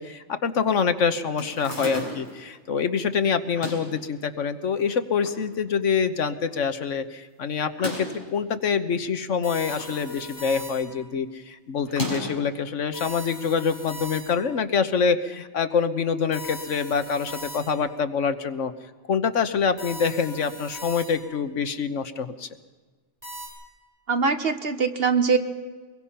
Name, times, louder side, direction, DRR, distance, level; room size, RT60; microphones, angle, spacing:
voice 1, 0.0-18.7 19.1-22.5, left 6 dB, 85° left, 10 dB, 1.4 m, -26 dB
sound 1, 1.4-2.4 3.4-4.0 4.8-5.4 5.8-5.9 6.1-6.2 7.6-8.3 9.3-10.1 10.4-10.7 11.8-12.5, left 1 dB, 40° left, 5.5 m, -34 dB
sound 2, 9.4-11.1 12.9-14.6 16.3-18.0 19.8-21.4 23.2-23.5, right 1 dB, 30° right, 7.6 m, -40 dB
voice 2, 24.1-25.4, right 5 dB, 55° right, 8 dB, 1.5 m, -22 dB
25.0 x 21.5 x 5.8 m, 1.4 s
omnidirectional pair, 1.2 m